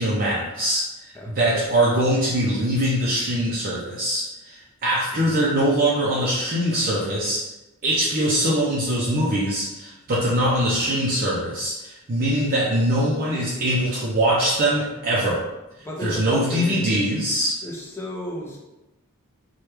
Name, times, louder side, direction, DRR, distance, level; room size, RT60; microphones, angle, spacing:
voice 1, 0.0-7.5 7.8-15.4 16.0-17.6, right 1 dB, 40° right, -5 dB, 0.5 m, -22 dB
voice 2, 1.1-1.7 5.1-5.5 15.8-17.1 17.6-18.6, left 1 dB, 10° left, -3 dB, 0.6 m, -34 dB
3.3 x 2.2 x 3.0 m, 0.99 s
head